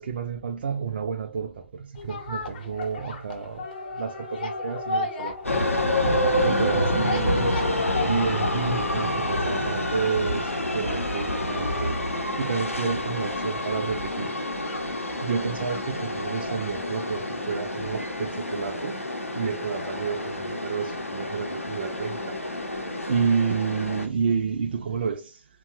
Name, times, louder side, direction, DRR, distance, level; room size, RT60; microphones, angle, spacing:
voice 1, 0.0-5.8 6.4-7.5 8.0-12.0 12.4-14.3 15.2-19.0 19.3-22.4 23.1-25.5, right 6 dB, 50° right, 0.3 m, -30 dB
sound 1, 1.9-17.1 17.5-17.6, left 3 dB, 45° left, 0.6 m, -37 dB
sound 2, 5.4-24.1, left 1 dB, 85° left, 0.6 m, -28 dB
2.8 x 2.1 x 2.3 m
figure-of-eight pair, 130°, 7 cm